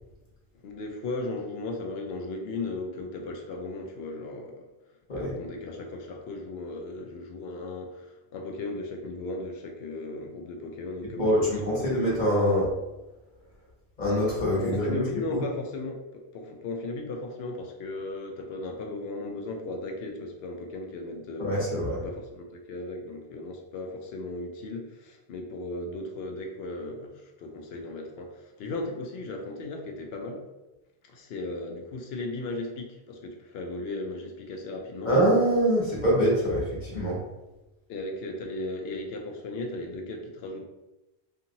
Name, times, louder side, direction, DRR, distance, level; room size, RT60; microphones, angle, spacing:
voice 1, 0.6-4.7 5.1-12.1 14.6-21.5 22.0-30.4 31.1-35.1 37.9-40.7, left 2 dB, 75° left, 2 dB, 0.8 m, -36 dB
voice 2, 11.2-12.7 14.0-15.0 15.3-15.4 21.4-22.0 35.0-37.2, equal, 45° left, -6 dB, 1.1 m, -24 dB
2.8 x 2.6 x 2.6 m, 1.0 s
omnidirectional pair, 1.1 m